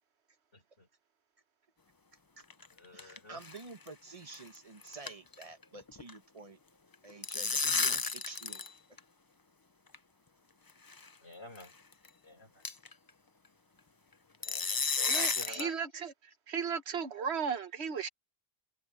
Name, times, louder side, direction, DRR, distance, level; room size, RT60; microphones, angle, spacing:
voice 1, 0.5-0.9 2.7-3.4 11.2-11.7 12.2-12.6 14.4-15.7, left 2 dB, 85° left, 5.2 m, -50 dB
sound 1, 2.4-3.2 3.4-3.6 3.9-4.0 4.3-4.6 4.8-6.1 6.9-8.7 9.0-9.1 9.9-10.0 10.9-11.1 11.5-11.6 12.0-12.1 12.6-12.9 14.4-15.7, left 4 dB, 25° left, 0.5 m, -32 dB
voice 2, 3.3-6.6 7.0-8.6, right 3 dB, 35° right, 1.3 m, -49 dB
voice 3, 15.1-16.1 16.5-18.1, right 6 dB, 90° right, 1.4 m, -35 dB
omnidirectional pair, 1.1 m